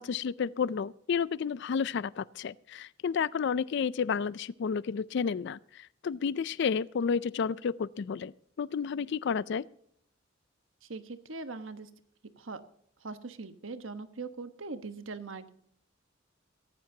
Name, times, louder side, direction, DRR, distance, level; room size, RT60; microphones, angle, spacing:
voice 1, 0.0-8.3 8.6-9.7, left 6 dB, 60° left, 0.4 m, -31 dB
voice 2, 10.9-11.9 12.4-12.6 13.0-15.5, right 3 dB, 90° right, 1.2 m, -41 dB
16.0 x 14.5 x 2.8 m
head